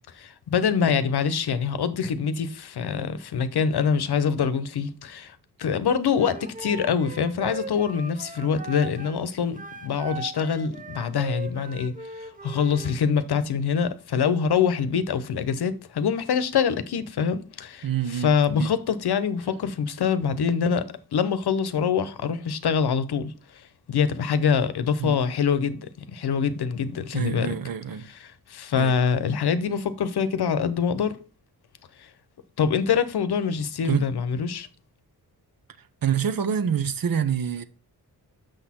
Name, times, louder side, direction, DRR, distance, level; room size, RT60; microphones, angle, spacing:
voice 1, 0.1-27.5 28.5-31.2 32.0-32.1 32.6-34.7, left 6 dB, 75° left, 0.8 m, -25 dB
Wind instrument woodwind instrument, 6.2-9.2 9.5-13.0, right 4 dB, 20° right, 0.7 m, -39 dB
voice 2, 17.8-18.3 18.6-18.7 25.0-25.2 27.1-28.1 28.7-29.0 33.8-34.1 35.8-37.6, right 8 dB, 60° right, 0.8 m, -26 dB
6.6 x 6.2 x 4.3 m
wide cardioid pair, 110°, 39 cm